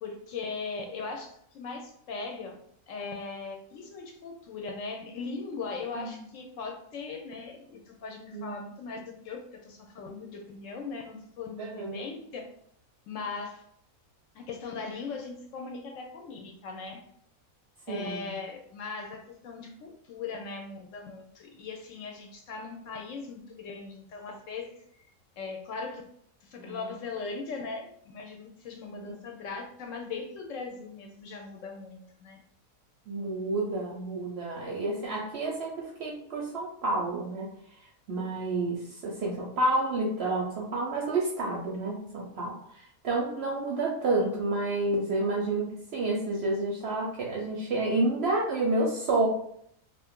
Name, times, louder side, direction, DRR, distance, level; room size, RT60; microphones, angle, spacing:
voice 1, 0.0-2.6 2.9-12.4 13.1-13.6 14.3-17.0 17.9-24.8 25.4-26.0 26.4-32.4, left 4 dB, 70° left, 2 dB, 0.9 m, -39 dB
voice 2, 11.6-12.0 17.9-18.3 26.6-26.8 29.0-29.2 33.1-37.5 38.1-49.3, right 2 dB, 60° right, -1 dB, 0.7 m, -30 dB
2.6 x 2.4 x 3.5 m, 0.67 s
omnidirectional pair, 1.5 m